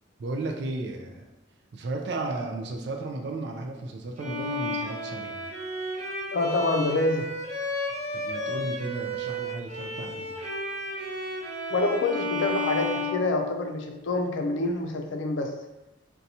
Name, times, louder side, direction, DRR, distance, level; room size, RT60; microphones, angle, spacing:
voice 1, 0.2-1.3 1.7-5.4 8.1-10.3, right 2 dB, 60° right, 2 dB, 0.4 m, -34 dB
Bowed string instrument, 4.2-14.0, left 1 dB, 35° right, 0.8 m, -33 dB
voice 2, 6.3-7.3 11.7-15.5, left 2 dB, 80° left, 4 dB, 0.4 m, -26 dB
2.7 x 2.2 x 4.0 m, 0.98 s
head